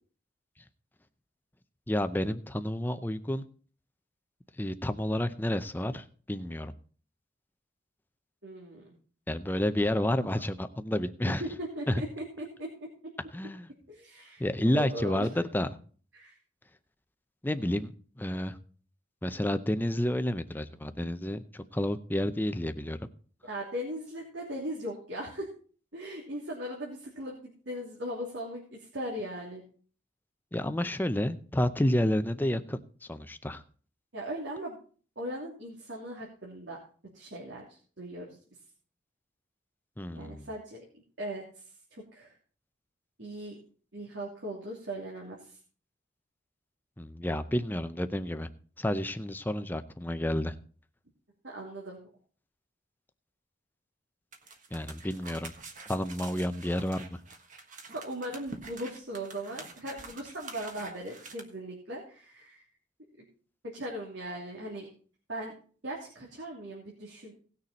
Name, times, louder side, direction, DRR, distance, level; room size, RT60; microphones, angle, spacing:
voice 1, 1.9-3.4 4.6-6.7 9.3-11.4 11.9-12.0 13.3-13.7 14.4-15.7 17.4-18.6 19.2-23.0 30.5-32.8 33.1-33.6 40.0-40.5 47.0-48.5 48.8-50.6 54.7-55.5 55.9-57.2, left 1 dB, 10° left, 10 dB, 0.6 m, -30 dB
voice 2, 8.4-9.0 10.0-10.1 11.2-12.7 13.9-14.5 14.7-15.3 16.1-16.4 23.4-25.5 25.9-29.6 34.1-34.8 35.2-36.8 37.1-38.4 40.1-40.8 41.2-41.6 41.9-42.4 43.2-43.6 43.9-45.6 51.5-52.0 57.9-62.6 63.6-64.9 65.3-65.5 65.8-67.3, right 1 dB, 75° right, -3 dB, 2.8 m, -39 dB
Dog stepping, 54.3-61.4, right 3 dB, 45° right, 1.5 m, -47 dB
18.0 x 6.6 x 4.2 m, 0.42 s
head